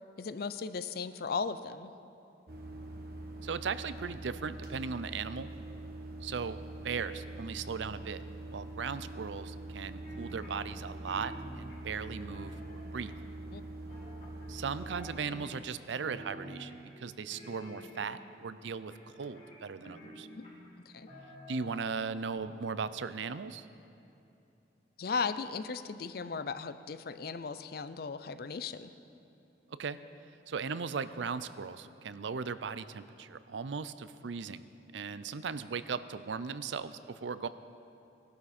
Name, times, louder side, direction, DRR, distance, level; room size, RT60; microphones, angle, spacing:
voice 1, 0.2-1.9 13.5-13.6 20.4-20.5 20.9-21.1 25.0-28.9, left 5 dB, 55° left, 12 dB, 0.5 m, -36 dB
sound 1, 2.5-15.2, right 2 dB, 55° right, 1.3 m, -44 dB
voice 2, 3.4-5.5 6.2-6.6 6.8-8.2 8.5-13.1 14.5-18.9 19.2-20.3 21.5-23.7 29.8-30.0 30.5-34.7 34.9-37.5, right 5 dB, 90° right, 14 dB, 0.5 m, -37 dB
sound 2, 10.0-10.8 11.1-13.3 13.9-14.6 14.8-15.8 16.0-16.9 17.3-18.3 18.9-20.7 21.1-22.0 22.3-22.4, equal, 40° left, 3.7 m, -49 dB
19.0 x 12.0 x 4.3 m, 2.8 s
head